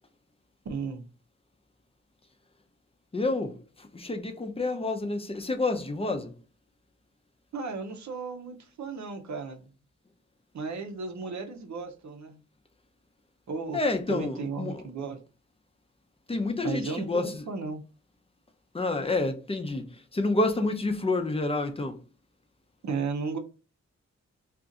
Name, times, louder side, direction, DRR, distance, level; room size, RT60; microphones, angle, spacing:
voice 1, 0.6-1.0 7.5-9.7 10.5-12.4 13.5-13.8 14.1-15.2 16.6-17.8 22.8-23.4, right 4 dB, 75° right, 0.7 m, -34 dB
voice 2, 3.1-6.3 13.7-14.8 16.3-17.4 18.7-22.0, left 2 dB, 20° left, 0.5 m, -29 dB
2.5 x 2.4 x 3.8 m
wide cardioid pair, 115°, 29 cm